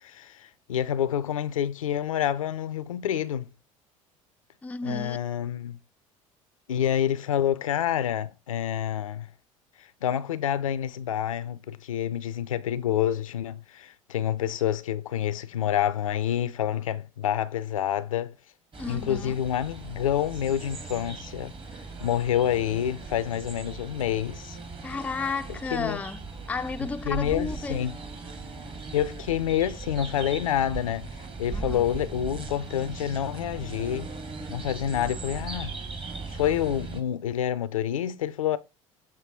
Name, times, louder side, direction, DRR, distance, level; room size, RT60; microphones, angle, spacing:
voice 1, 0.0-3.5 4.8-5.8 6.7-9.3 10.0-18.3 18.9-21.5 22.0-24.6 25.7-26.0 27.1-27.9 28.9-34.1 34.5-35.7 36.3-38.6, left 10 dB, 80° left, 0.5 m, -28 dB
voice 2, 4.6-5.2 18.8-19.4 24.8-27.9 31.5-31.8, left 4 dB, 10° left, 0.3 m, -33 dB
sound 1, 18.7-37.0, right 3 dB, 30° right, 1.4 m, -39 dB
6.9 x 2.7 x 4.9 m
figure-of-eight pair, 65°, 17 cm